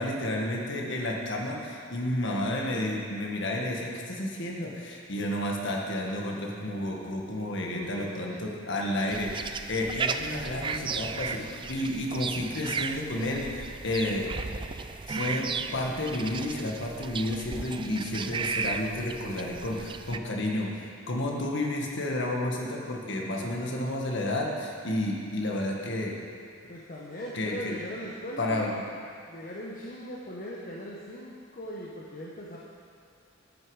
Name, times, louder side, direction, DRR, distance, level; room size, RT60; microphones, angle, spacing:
voice 1, 0.0-14.3 15.1-26.1 27.3-27.8 28.4-28.7, left 1 dB, 65° left, -1 dB, 1.5 m, -31 dB
voice 2, 7.7-8.4 23.4-23.5 26.7-28.7 29.3-32.6, equal, 45° left, -5 dB, 1.1 m, -39 dB
sound 1, 9.1-20.2, right 5 dB, 25° right, 0.3 m, -35 dB
10.5 x 9.6 x 4.9 m, 2.3 s
head